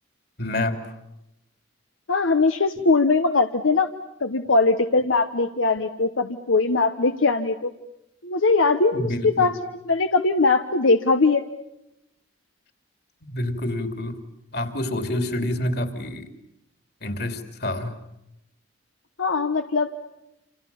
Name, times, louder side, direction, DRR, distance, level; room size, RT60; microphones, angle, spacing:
voice 1, 0.4-1.0 8.9-9.5 13.2-14.2 14.5-16.3 17.0-18.0, left 1 dB, 50° left, 7 dB, 3.1 m, -28 dB
voice 2, 2.1-3.9 4.2-7.7 8.2-11.4 19.2-19.9, left 3 dB, 80° left, 8 dB, 1.1 m, -21 dB
29.0 x 27.5 x 7.1 m, 0.88 s
head